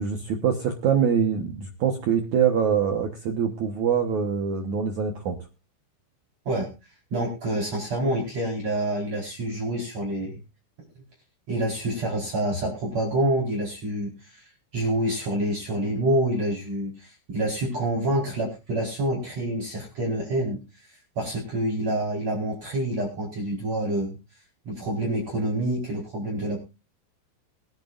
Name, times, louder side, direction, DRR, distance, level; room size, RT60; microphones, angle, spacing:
voice 1, 0.0-5.4, right 7 dB, 75° right, 4 dB, 1.7 m, -24 dB
voice 2, 7.1-10.4 11.5-24.2 24.7-26.6, right 1 dB, 35° right, 0 dB, 5.3 m, -27 dB
23.5 x 10.5 x 2.5 m, 0.29 s
omnidirectional pair, 5.3 m